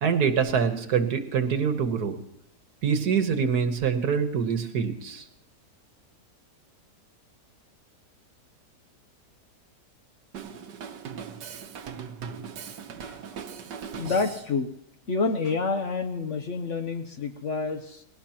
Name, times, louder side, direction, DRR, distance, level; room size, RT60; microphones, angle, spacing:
voice 1, 0.0-2.1 2.8-5.2, right 6 dB, 70° right, 7 dB, 1.7 m, -25 dB
Drum kit, 10.3-14.5, right 7 dB, 85° right, 1.6 m, -39 dB
voice 2, 14.0-14.7 15.1-18.0, left 4 dB, 55° left, 7 dB, 1.0 m, -28 dB
20.5 x 17.5 x 2.9 m, 0.79 s
omnidirectional pair, 1.8 m